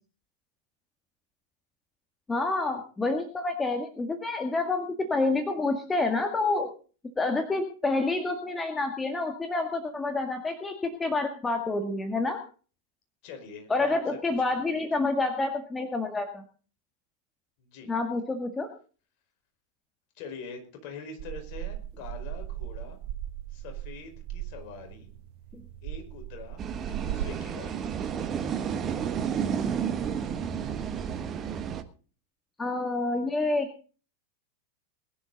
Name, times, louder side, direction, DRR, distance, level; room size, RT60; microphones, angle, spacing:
voice 1, 2.3-6.7 7.2-12.4 13.7-16.4 17.9-18.7 25.5-25.6 32.6-33.9, left 3 dB, 10° left, 5 dB, 1.8 m, -28 dB
voice 2, 13.2-14.0 14.3-14.8 17.6-17.9 20.1-23.0 23.5-25.1 25.8-27.8, left 5 dB, 45° left, 4 dB, 4.9 m, -44 dB
sound 1, 21.2-27.3, right 13 dB, 45° right, 1.2 m, -38 dB
sound 2, 26.6-31.8, right 7 dB, 25° right, 1.4 m, -31 dB
21.0 x 11.5 x 4.0 m, 0.39 s
figure-of-eight pair, 90°, 0 cm